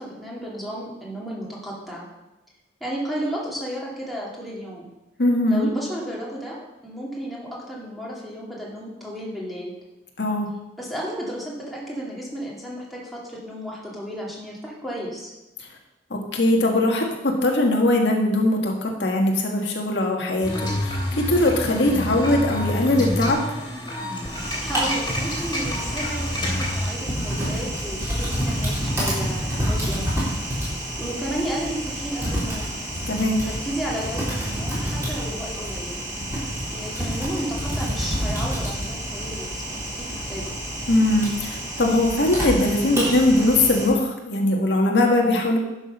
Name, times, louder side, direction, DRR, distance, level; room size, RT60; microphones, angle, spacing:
voice 1, 0.0-2.1 2.8-4.9 5.5-9.7 10.8-15.3 24.6-30.1 31.0-32.7 33.4-36.0 36.7-40.6, equal, ahead, -5 dB, 2.5 m, -33 dB
voice 2, 5.2-5.7 10.2-10.5 16.1-23.4 33.1-33.4 40.9-45.6, left 1 dB, 75° left, 0 dB, 1.6 m, -21 dB
sound 1, 20.4-26.9, left 1 dB, 25° left, 2.8 m, -28 dB
Typing, 24.2-43.9, equal, 15° right, 3.6 m, -28 dB
11.0 x 6.2 x 5.5 m, 0.99 s
head